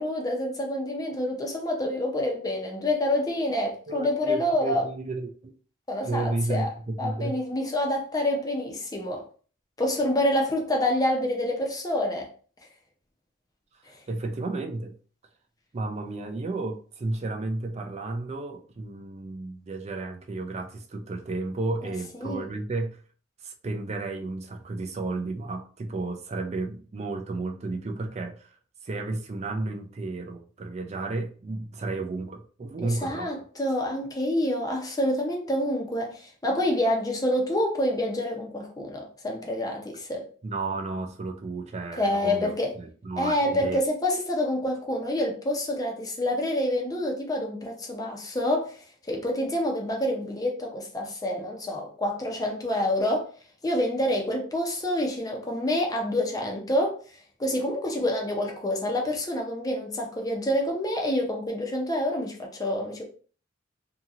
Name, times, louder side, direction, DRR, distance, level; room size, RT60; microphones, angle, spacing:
voice 1, 0.0-4.8 5.9-6.7 7.0-9.2 9.8-12.3 13.9-14.0 21.8-21.9 22.2-22.6 32.8-40.2 41.9-42.7 43.2-53.3 53.6-57.0 57.4-63.1, left 1 dB, 20° left, 0.6 m, -27 dB
voice 2, 3.9-5.5 6.0-6.7 7.0-7.3 14.1-14.9 15.7-23.0 23.4-28.5 28.8-33.4 40.4-43.8, right 3 dB, 35° right, 0.4 m, -32 dB
2.8 x 2.8 x 2.4 m
head